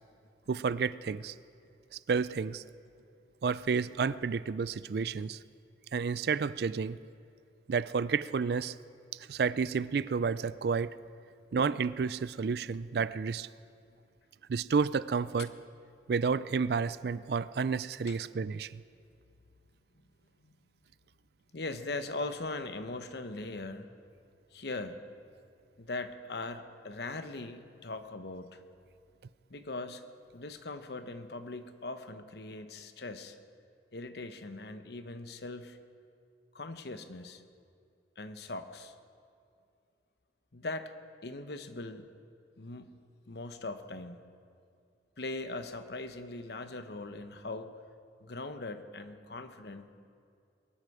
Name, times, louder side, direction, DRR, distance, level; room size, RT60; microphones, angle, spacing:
voice 1, 0.5-1.3 2.1-2.6 3.4-5.4 5.9-7.0 7.7-8.8 9.3-10.9 11.5-13.5 14.5-15.5 16.1-18.8, right 5 dB, 60° right, 17 dB, 0.4 m, -30 dB
voice 2, 21.5-23.9 24.5-25.0 25.8-28.6 29.5-30.0 30.3-33.4 33.9-35.8 36.5-37.4 38.2-38.9 40.5-40.9 41.2-42.1 42.6-42.9 43.3-44.3 45.2-47.7 48.2-50.1, left 2 dB, 65° left, 9 dB, 0.9 m, -40 dB
22.0 x 12.0 x 4.9 m, 2.4 s
head